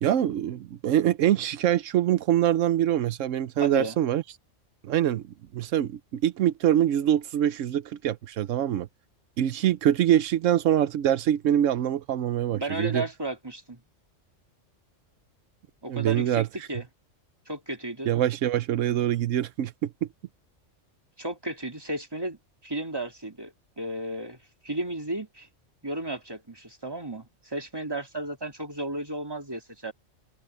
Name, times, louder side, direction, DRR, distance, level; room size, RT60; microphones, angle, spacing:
voice 1, 0.0-4.2 4.8-5.2 5.5-8.9 9.4-13.0 15.9-16.5 18.1-20.1, right 11 dB, 90° right, 1.0 m, -24 dB
voice 2, 3.6-3.9 12.5-13.8 15.8-16.9 17.5-18.1 21.2-24.4 24.6-25.5 25.8-29.9, right 1 dB, 20° right, 2.9 m, -34 dB
omnidirectional pair, 1.3 m